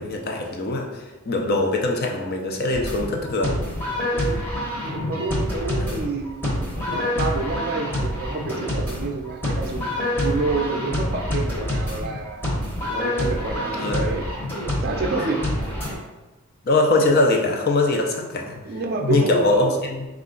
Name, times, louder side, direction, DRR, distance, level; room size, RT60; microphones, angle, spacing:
voice 1, 0.0-3.6 5.8-6.0 6.9-7.1 13.8-14.1 16.6-18.6 19.0-20.1, left 2 dB, 45° left, 1 dB, 0.5 m, -22 dB
sound 1, 2.7-15.9, left 1 dB, 10° left, 0.9 m, -27 dB
voice 2, 4.8-12.4 12.9-14.2 14.8-15.4 18.6-19.8, right 3 dB, 45° right, 2 dB, 0.5 m, -29 dB
4.3 x 2.4 x 3.8 m, 1.1 s
head